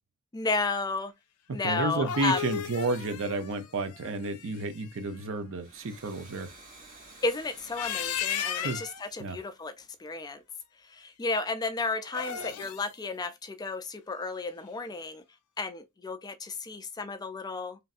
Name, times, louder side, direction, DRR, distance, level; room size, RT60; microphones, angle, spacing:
voice 1, 0.3-1.1 1.5-2.5 7.2-10.4 10.9-15.2 15.6-17.8, left 3 dB, 20° left, 0.3 m, -33 dB
voice 2, 1.5-6.5 8.6-8.8 9.2-9.4, right 2 dB, 60° right, 0.5 m, -31 dB
sound 1, 1.8-4.8 7.6-9.1 12.0-12.9, left 9 dB, 85° left, 0.5 m, -35 dB
Domestic sounds home sounds, 5.4-9.9, right 2 dB, 40° right, 1.8 m, -53 dB
3.1 x 2.6 x 2.4 m
head